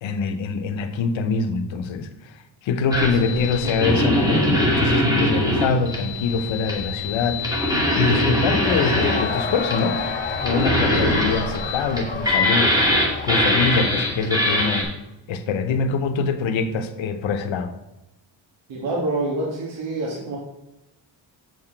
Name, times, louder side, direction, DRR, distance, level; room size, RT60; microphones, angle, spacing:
voice 1, 0.0-2.4 2.6-7.4 8.0-10.0 10.4-12.8 13.2-14.9 15.3-17.7, left 4 dB, 85° left, 8 dB, 0.9 m, -24 dB
sound 1, 2.9-14.8, left 1 dB, 10° right, 2.4 m, -22 dB
voice 2, 2.9-3.7 11.0-11.2 18.7-20.4, right 2 dB, 85° right, -4 dB, 1.6 m, -28 dB
Cheering / Crowd, 8.2-14.9, left 4 dB, 25° left, 1.2 m, -32 dB
7.3 x 5.9 x 4.5 m, 0.97 s
cardioid pair, 95°, 45 cm